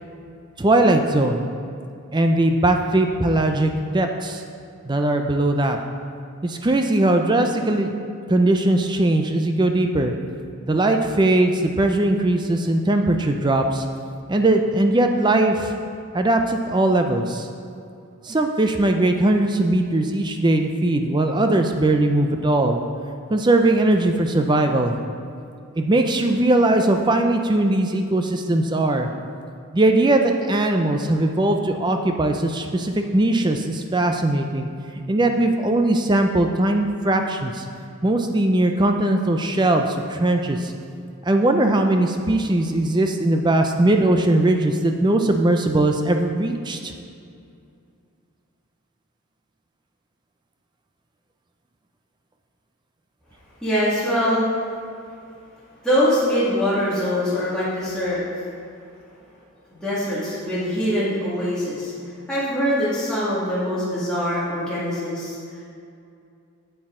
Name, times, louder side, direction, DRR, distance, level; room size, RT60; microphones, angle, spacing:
voice 1, 0.6-1.4 2.1-4.4 4.9-5.8 6.4-7.9 8.3-10.1 10.7-13.9 14.3-15.7 16.1-17.5 18.2-22.8 23.3-25.0 25.8-29.1 29.7-34.7 35.0-37.7 38.0-40.7 41.2-46.9, right 1 dB, 20° right, 5 dB, 0.4 m, -20 dB
voice 2, 53.6-54.5 55.8-58.2 59.7-61.9 62.3-65.4, equal, 5° left, -11 dB, 1.9 m, -23 dB
8.4 x 8.0 x 3.7 m, 2.5 s
head